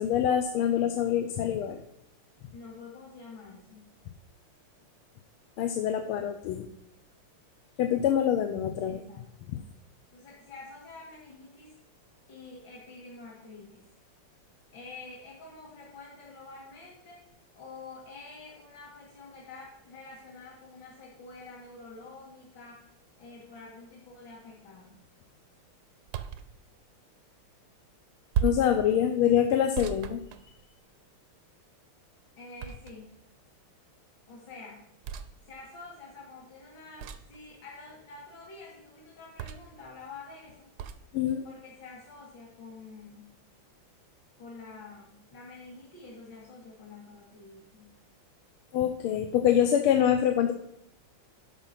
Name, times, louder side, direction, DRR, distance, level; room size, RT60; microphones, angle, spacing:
voice 1, 0.0-1.8 5.6-6.7 7.8-9.0 9.5-9.6 28.4-30.2 41.1-41.4 48.7-50.5, left 9 dB, 80° left, 7 dB, 1.5 m, -25 dB
voice 2, 2.5-3.9 8.9-9.2 10.1-11.7 12.3-13.8 14.7-17.2 17.5-22.9 23.2-25.0 32.4-33.1 34.3-34.9 35.4-40.7 41.4-43.4 44.4-48.0, left 3 dB, 55° left, -4 dB, 2.4 m, -48 dB
sound 1, 26.1-26.5 28.3-28.8 29.8-30.9 32.6-33.2 35.0-35.3 37.0-37.4 39.4-39.8 40.8-41.0, right 8 dB, 75° right, 0.9 m, -34 dB
11.0 x 5.7 x 5.7 m, 0.76 s
omnidirectional pair, 2.4 m